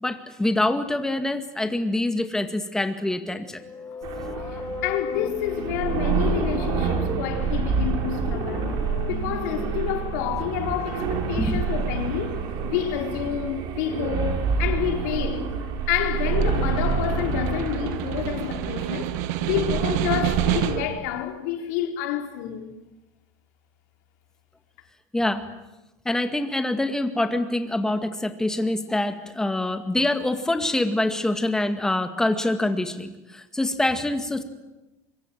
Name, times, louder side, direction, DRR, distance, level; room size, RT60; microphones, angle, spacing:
voice 1, 0.0-3.6 11.4-11.7 25.1-25.4 26.1-34.4, left 1 dB, 5° left, 2.0 m, -25 dB
sound 1, 3.3-11.1, left 5 dB, 20° left, 1.5 m, -37 dB
sound 2, 4.0-20.9, right 5 dB, 55° right, 4.5 m, -27 dB
voice 2, 4.5-8.8 9.1-15.5 15.9-19.1 19.4-22.7, left 11 dB, 80° left, 4.0 m, -29 dB
Snare drum, 16.1-21.0, right 15 dB, 75° right, 1.4 m, -29 dB
24.5 x 23.5 x 9.3 m
supercardioid pair, 140°, 9 cm